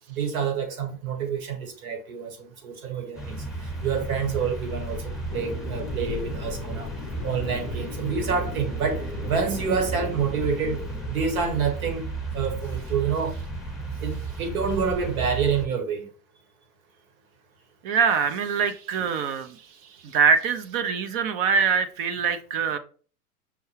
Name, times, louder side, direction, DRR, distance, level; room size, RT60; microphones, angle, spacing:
voice 1, 0.1-6.9 7.2-10.8 11.1-12.0 12.3-13.4 14.0-16.1, right 6 dB, 70° right, 1.4 m, -28 dB
sound 1, 3.2-15.7, right 3 dB, ahead, 0.9 m, -34 dB
sound 2, 5.3-11.1, left 3 dB, 15° left, 0.5 m, -38 dB
voice 2, 17.8-19.6 20.0-22.8, right 6 dB, 40° right, 0.5 m, -23 dB
5.7 x 2.2 x 3.1 m
hypercardioid pair, 105°, 44 cm